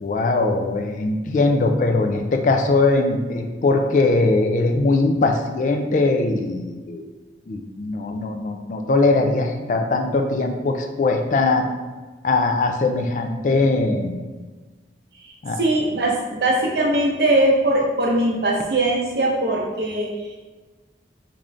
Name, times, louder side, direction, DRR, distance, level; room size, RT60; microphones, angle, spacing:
voice 1, 0.0-7.0 7.5-11.7 12.2-14.2 15.4-15.6, left 3 dB, 45° left, 4 dB, 0.3 m, -20 dB
voice 2, 15.2-20.4, right 1 dB, 65° right, -2 dB, 0.7 m, -21 dB
3.6 x 2.6 x 3.2 m, 1.3 s
head